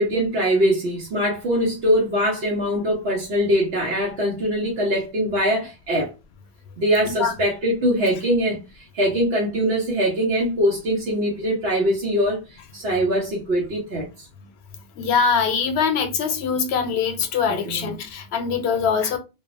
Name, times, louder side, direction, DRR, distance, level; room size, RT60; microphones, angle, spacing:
voice 1, 0.0-6.1 6.8-8.6 8.9-12.4 12.7-14.1 17.5-17.9, equal, 75° right, 1.0 m, -22 dB
voice 2, 15.0-19.2, left 6 dB, 85° left, 0.9 m, -23 dB
2.6 x 2.1 x 2.4 m
omnidirectional pair, 1.1 m